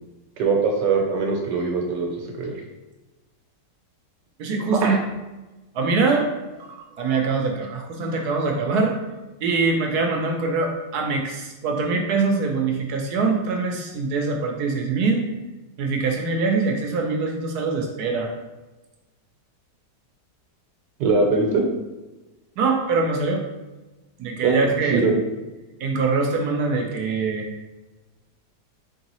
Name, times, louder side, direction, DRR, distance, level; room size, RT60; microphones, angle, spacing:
voice 1, 0.4-2.5 4.7-5.0 21.0-21.6 24.4-24.5 24.8-25.2, right 4 dB, 85° right, 2 dB, 1.4 m, -22 dB
voice 2, 4.4-5.0 5.7-6.7 7.0-9.0 9.4-15.2 15.8-18.3 22.6-23.4 24.2-25.1 25.8-27.5, right 4 dB, 70° right, 2 dB, 1.1 m, -23 dB
4.6 x 3.3 x 2.9 m, 1.1 s
omnidirectional pair, 1.8 m